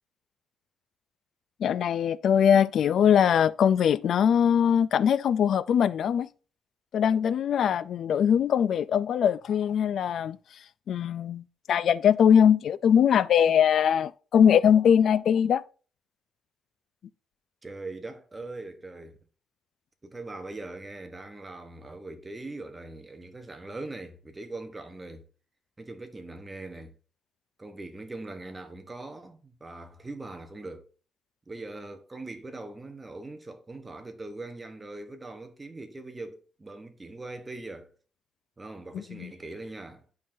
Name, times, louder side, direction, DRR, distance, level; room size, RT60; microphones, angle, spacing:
voice 1, 1.6-6.3 6.9-10.4 10.9-15.6 38.9-39.3, left 8 dB, 65° left, 0.3 m, -22 dB
voice 2, 17.6-19.2 20.0-25.3 25.8-26.9 27.6-30.9 31.5-37.9 38.6-40.0, right 2 dB, 20° right, 1.0 m, -41 dB
11.0 x 3.8 x 2.6 m
cardioid pair, 90°, 0 cm